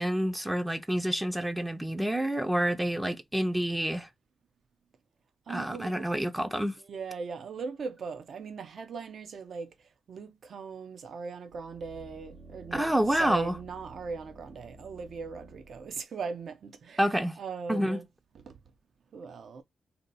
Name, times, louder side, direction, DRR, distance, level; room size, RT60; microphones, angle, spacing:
voice 1, 0.0-4.1 5.5-6.8 12.7-13.6 17.0-17.4 17.7-18.0, right 1 dB, 10° right, 0.4 m, -28 dB
voice 2, 5.5-6.1 6.8-9.7 10.1-18.1 18.3-18.6 19.1-19.6, right 5 dB, 70° right, 0.5 m, -39 dB
sound 1, 11.5-15.9 16.4-16.5, right 1 dB, 90° right, 0.8 m, -51 dB
2.7 x 2.2 x 3.9 m
cardioid pair, 70°, 0 cm